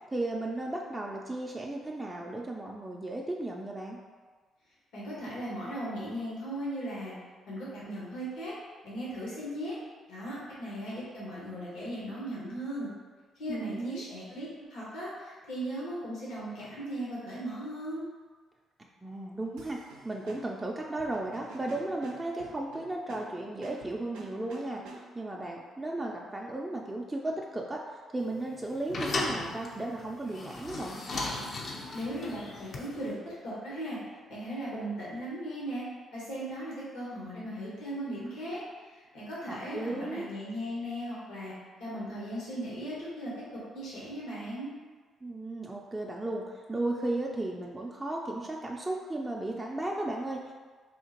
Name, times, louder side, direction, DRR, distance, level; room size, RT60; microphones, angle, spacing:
voice 1, 0.1-4.0 13.5-14.0 19.0-31.0 39.5-40.3 45.2-50.5, right 2 dB, 20° right, -2 dB, 0.4 m, -35 dB
voice 2, 4.9-7.1 7.5-8.5 8.8-9.8 10.1-12.9 13.4-18.0 31.9-34.0 34.3-35.8 36.1-41.5 41.8-43.3 43.7-44.7, right 1 dB, 75° left, -7 dB, 1.1 m, -37 dB
sound 1, 19.6-25.3, right 3 dB, 85° right, 0.4 m, -49 dB
sound 2, 28.2-33.1, left 2 dB, 55° left, 0.5 m, -36 dB
3.6 x 2.4 x 2.8 m, 1.4 s
supercardioid pair, 55°, 0 cm